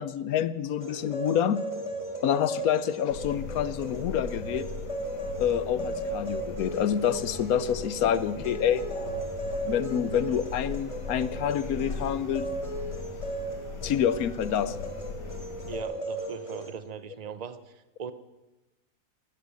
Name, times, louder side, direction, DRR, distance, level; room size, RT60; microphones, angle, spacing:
voice 1, 0.0-1.6 2.2-4.7 5.4-8.8 9.6-12.5 13.8-14.8, left 9 dB, 70° left, 15 dB, 1.1 m, -27 dB
sound 1, 0.8-16.7, right 1 dB, 20° left, 1.9 m, -36 dB
sound 2, 3.1-15.8, left 4 dB, 85° left, 2.0 m, -39 dB
voice 2, 15.6-17.6 18.0-18.1, right 7 dB, 50° right, 13 dB, 0.4 m, -39 dB
15.5 x 12.5 x 6.4 m, 1.0 s
omnidirectional pair, 1.7 m